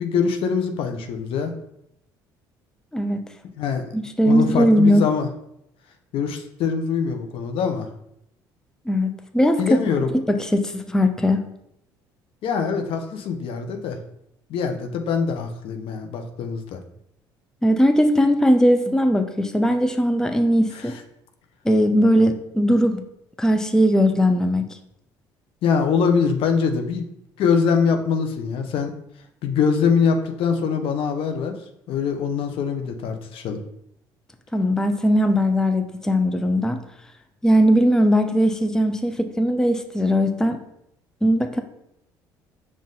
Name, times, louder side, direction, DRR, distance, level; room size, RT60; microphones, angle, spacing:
voice 1, 0.0-1.5 3.5-3.9 4.2-5.3 6.1-7.9 9.6-10.1 12.4-14.0 14.5-16.8 20.7-21.0 25.6-27.0 27.4-28.9 29.4-31.6 31.9-33.6, left 6 dB, 65° left, 6 dB, 0.6 m, -23 dB
voice 2, 2.9-3.2 3.9-5.0 8.9-9.8 10.3-11.4 17.6-21.0 21.6-23.0 23.4-24.6 34.5-36.8 37.4-40.6 41.2-41.6, equal, 5° left, 7 dB, 0.5 m, -19 dB
5.3 x 2.5 x 3.8 m, 0.76 s
hypercardioid pair, 65°, 10 cm